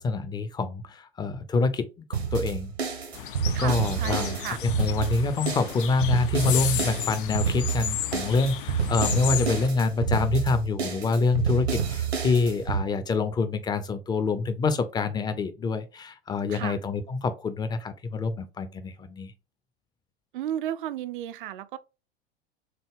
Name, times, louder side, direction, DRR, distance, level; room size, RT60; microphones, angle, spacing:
voice 1, 0.0-2.7 3.6-4.4 4.6-19.3, left 4 dB, 15° left, 0.5 m, -26 dB
sound 1, 2.1-12.8, right 7 dB, 75° right, 1.2 m, -29 dB
sound 2, 3.1-9.7, left 11 dB, 55° left, 0.6 m, -33 dB
voice 2, 3.5-4.6 16.5-16.8 20.3-21.8, right 11 dB, 50° right, 0.5 m, -33 dB
6.5 x 2.2 x 3.5 m
figure-of-eight pair, 90°, 32 cm